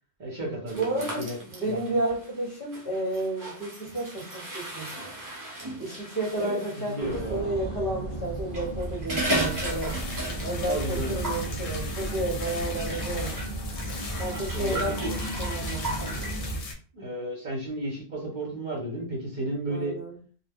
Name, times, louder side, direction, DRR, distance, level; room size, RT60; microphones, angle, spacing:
voice 1, 0.2-1.4 1.6-1.8 6.4-6.6 6.9-7.5 10.7-11.2 14.5-15.1 16.9-20.0, right 1 dB, 45° right, 0.8 m, -32 dB
voice 2, 0.7-4.9 5.8-10.0 10.4-13.4 14.2-16.2 19.7-20.1, right 1 dB, 50° left, 1.1 m, -32 dB
sound 1, 0.7-7.3 8.3-10.7 11.0-11.5 12.4-16.4, right 1 dB, 25° right, 0.4 m, -36 dB
sound 2, 7.0-16.6, right 2 dB, 30° left, 0.9 m, -34 dB
sound 3, 9.2-16.7, left 2 dB, 75° left, 0.9 m, -38 dB
2.2 x 2.2 x 3.4 m
omnidirectional pair, 1.2 m